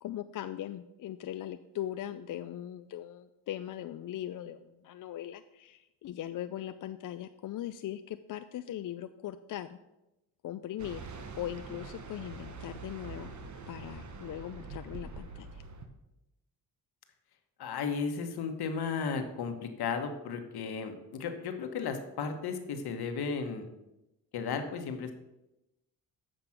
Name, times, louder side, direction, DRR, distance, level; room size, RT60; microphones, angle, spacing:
voice 1, 0.0-9.8 10.4-11.1 11.3-13.3 13.7-15.6, left 12 dB, 55° left, 10 dB, 0.4 m, -40 dB
sound 1, 10.8-15.9, right 4 dB, 45° right, 1.2 m, -44 dB
voice 2, 17.6-23.7 24.3-25.1, left 5 dB, 70° left, 6 dB, 1.3 m, -34 dB
7.7 x 5.2 x 5.8 m, 0.94 s
cardioid pair, 75°, 39 cm